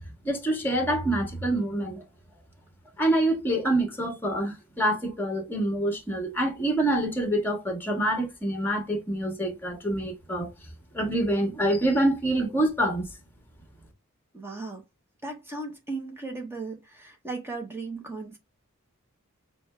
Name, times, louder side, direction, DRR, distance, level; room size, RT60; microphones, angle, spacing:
voice 1, 0.2-2.0 3.0-10.5 10.9-13.1, right 1 dB, 10° left, 1.3 m, -26 dB
voice 2, 14.3-14.8 15.2-18.4, right 3 dB, 10° right, 0.8 m, -36 dB
6.1 x 2.2 x 3.2 m
head